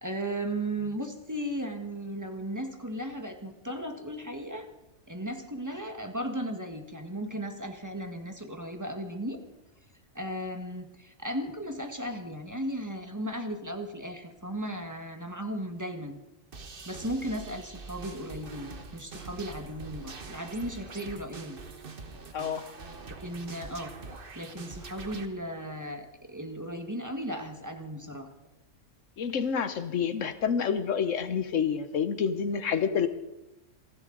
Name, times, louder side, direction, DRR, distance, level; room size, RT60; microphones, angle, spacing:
voice 1, 0.0-4.7 5.1-9.4 10.1-16.2 16.8-21.6 23.2-23.9 24.3-28.3, right 1 dB, 15° right, 5 dB, 1.4 m, -36 dB
sound 1, 16.5-25.3, right 4 dB, 45° right, 1.3 m, -44 dB
voice 2, 29.2-33.1, left 7 dB, 80° left, 11 dB, 1.3 m, -28 dB
28.5 x 11.5 x 3.9 m, 0.95 s
omnidirectional pair, 1.3 m